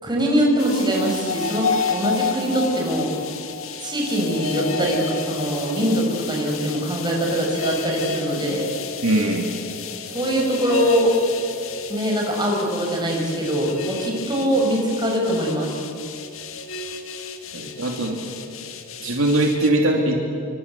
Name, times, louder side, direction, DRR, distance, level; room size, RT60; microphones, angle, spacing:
voice 1, 0.0-3.1 3.8-8.7 10.1-11.1 11.9-15.7, equal, 20° right, -1 dB, 6.7 m, -22 dB
sound 1, 0.6-19.7, left 4 dB, 65° left, 1.8 m, -31 dB
voice 2, 9.0-9.5 17.5-18.2 19.0-20.3, right 1 dB, 65° right, 1 dB, 2.9 m, -21 dB
28.0 x 25.5 x 8.4 m, 2.4 s
head